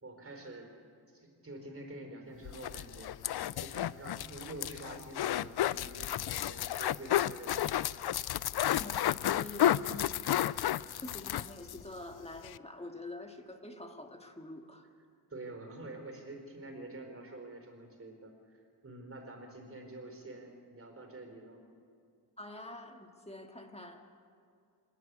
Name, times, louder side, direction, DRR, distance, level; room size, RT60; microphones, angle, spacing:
voice 1, 0.0-0.7 1.1-3.1 3.6-7.9 9.7-10.0 15.3-21.6, right 2 dB, 35° right, 4 dB, 4.4 m, -47 dB
sound 1, 2.4-11.8 12.1-12.2 12.4-12.6, left 12 dB, 70° left, 0.5 m, -32 dB
voice 2, 8.7-10.1 11.0-14.9 22.4-24.1, left 1 dB, 15° left, 4 dB, 1.9 m, -46 dB
27.0 x 11.0 x 9.6 m, 2.5 s
wide cardioid pair, 100°, 40 cm